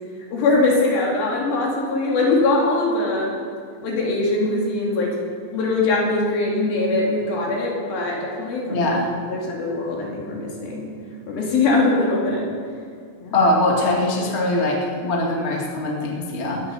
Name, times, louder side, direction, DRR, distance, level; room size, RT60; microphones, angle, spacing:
voice 1, 0.3-3.3 3.8-5.1 5.5-9.0 9.3-10.9 11.3-12.5 13.2-13.4, left 2 dB, 60° left, -2 dB, 4.1 m, -22 dB
voice 2, 8.7-9.1 13.3-16.6, left 1 dB, 35° left, -2 dB, 1.0 m, -22 dB
20.0 x 8.3 x 6.9 m, 2.1 s
omnidirectional pair, 5.0 m